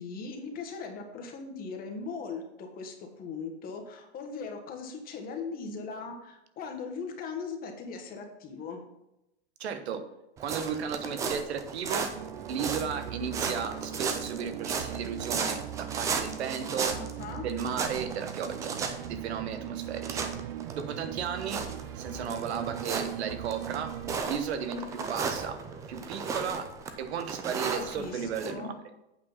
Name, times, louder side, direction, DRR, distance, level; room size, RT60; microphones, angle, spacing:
voice 1, 0.0-8.8 17.0-17.5 27.7-28.7, left 4 dB, 25° left, 3 dB, 1.5 m, -39 dB
voice 2, 9.6-10.0 10.4-12.1 12.5-16.9 17.4-20.3 20.7-21.6 22.0-23.9 24.2-25.6 25.9-26.7 27.0-28.7, right 7 dB, 75° right, 9 dB, 1.2 m, -34 dB
sound 1, 10.4-28.5, right 5 dB, 10° right, 0.3 m, -36 dB
sound 2, 12.1-24.2, right 12 dB, 55° right, 0.6 m, -40 dB
8.4 x 4.8 x 5.7 m, 0.89 s
hypercardioid pair, 140°, 33 cm